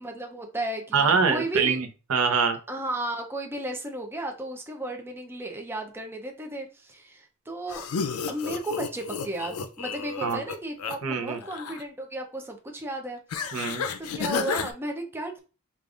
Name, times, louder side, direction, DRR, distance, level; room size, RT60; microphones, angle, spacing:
voice 1, 0.0-1.8 2.7-7.9 8.3-13.2 14.0-15.4, right 1 dB, 10° right, 3 dB, 0.5 m, -34 dB
voice 2, 0.9-2.6 10.2-10.4 11.0-11.4 13.5-13.8, right 5 dB, 70° right, 6 dB, 0.6 m, -24 dB
sound 1, 7.7-11.0 11.3-11.8 13.3-14.7, left 5 dB, 85° left, 0.4 m, -32 dB
5.0 x 2.4 x 2.4 m, 0.34 s
head